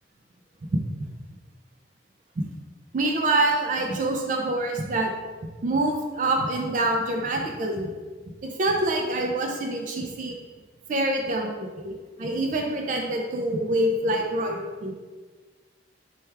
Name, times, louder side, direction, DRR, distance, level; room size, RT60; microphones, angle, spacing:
voice 1, 2.9-5.1 5.6-7.9 8.6-10.4 10.9-14.9, right 2 dB, 40° right, 2 dB, 0.3 m, -26 dB
4.4 x 2.3 x 3.2 m, 1.4 s
head